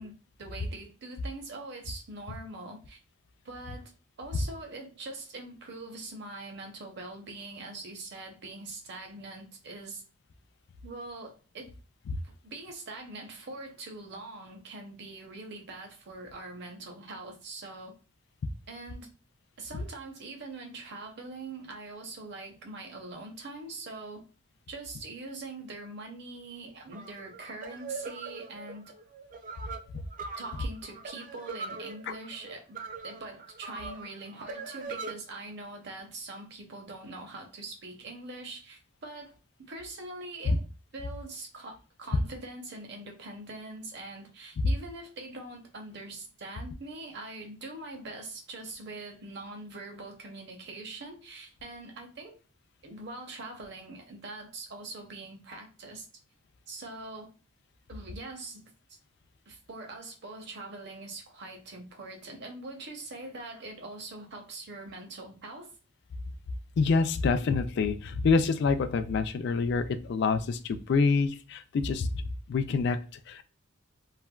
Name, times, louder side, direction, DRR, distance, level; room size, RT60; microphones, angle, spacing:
voice 1, 0.0-3.0 3.4-3.9 4.2-10.0 10.8-11.7 12.2-17.9 18.7-19.1 19.6-24.2 24.7-28.8 30.4-39.3 39.7-40.6 40.9-52.4 52.8-56.1 56.7-57.3 57.9-59.0 59.5-65.7, right 2 dB, 55° right, 0.7 m, -43 dB
sound 1, 26.9-35.1, right 4 dB, 40° right, 0.3 m, -41 dB
voice 2, 66.8-72.1 72.5-73.0 73.3-73.4, left 4 dB, 55° left, 0.3 m, -26 dB
3.2 x 2.1 x 2.2 m
head